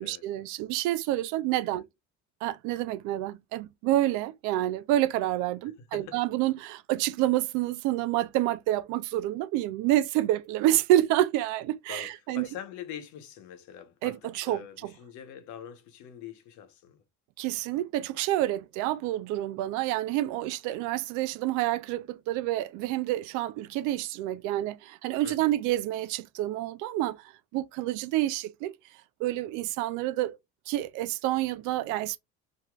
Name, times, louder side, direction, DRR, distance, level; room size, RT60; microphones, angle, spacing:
voice 1, 0.0-1.8 2.4-12.5 14.0-14.6 17.4-27.2 27.5-28.7 29.2-30.4 30.7-32.2, right 14 dB, 75° right, 0.5 m, -28 dB
voice 2, 5.6-6.2 11.9-17.0 25.2-25.5, left 9 dB, 70° left, 1.0 m, -44 dB
3.0 x 2.7 x 2.3 m
supercardioid pair, 100°, 30 cm